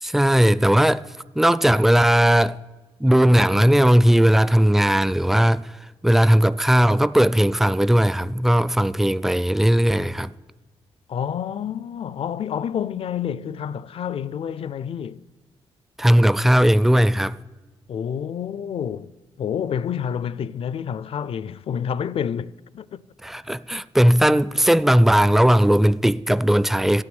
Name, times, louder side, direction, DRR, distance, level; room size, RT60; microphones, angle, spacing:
voice 1, 0.0-1.0 1.4-2.6 3.0-5.7 6.0-10.3 16.0-17.4 23.2-27.0, equal, 5° right, 0.4 m, -17 dB
voice 2, 11.1-15.2 17.9-19.1 19.4-23.0, left 8 dB, 60° left, 0.4 m, -28 dB
13.5 x 6.2 x 9.6 m
cardioid pair, 80°, 11 cm